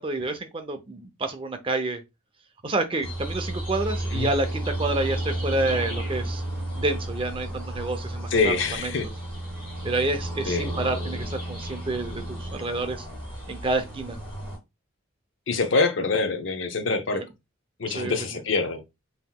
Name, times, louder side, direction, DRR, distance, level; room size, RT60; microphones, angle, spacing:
voice 1, 0.0-2.0 2.6-6.4 6.7-9.0 9.8-13.1 13.5-14.2 17.1-17.3 17.9-18.4, right 2 dB, 25° right, 0.5 m, -29 dB
sound 1, 3.0-14.6, right 1 dB, 10° left, 2.6 m, -32 dB
voice 2, 8.3-9.1 10.5-10.7 15.5-17.2 17.8-18.8, left 3 dB, 70° left, 0.6 m, -25 dB
5.6 x 2.9 x 2.2 m
head